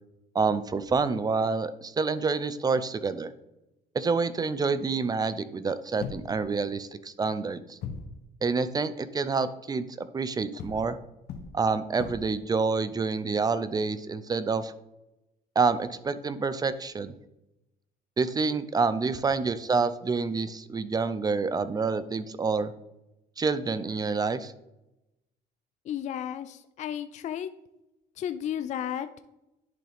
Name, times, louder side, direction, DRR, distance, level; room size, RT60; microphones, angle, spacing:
voice 1, 0.3-3.3 3.9-7.8 8.4-11.0 11.5-14.7 15.6-17.1 18.2-22.7 23.4-24.5, right 4 dB, 25° right, 13 dB, 0.5 m, -28 dB
sound 1, 6.0-6.7 7.8-8.2 10.6-12.5, left 6 dB, 65° left, 1.0 m, -39 dB
voice 2, 25.8-27.5 28.2-29.2, left 10 dB, 45° left, 11 dB, 0.4 m, -33 dB
10.5 x 3.7 x 3.5 m, 0.92 s
cardioid pair, 110°, 17 cm